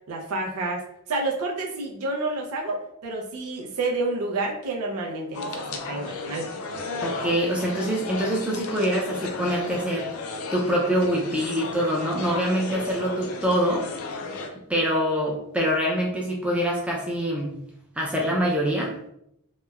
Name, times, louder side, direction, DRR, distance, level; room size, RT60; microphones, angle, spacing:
voice 1, 0.1-0.8 1.1-6.5, right 2 dB, 80° right, 0 dB, 0.4 m, -29 dB
sound 1, 5.3-14.5, left 3 dB, 70° left, 0.4 m, -34 dB
voice 2, 7.0-10.1 10.5-13.9 14.7-17.6 18.0-19.0, equal, 5° right, -3 dB, 0.4 m, -25 dB
2.9 x 2.0 x 2.3 m, 0.77 s
head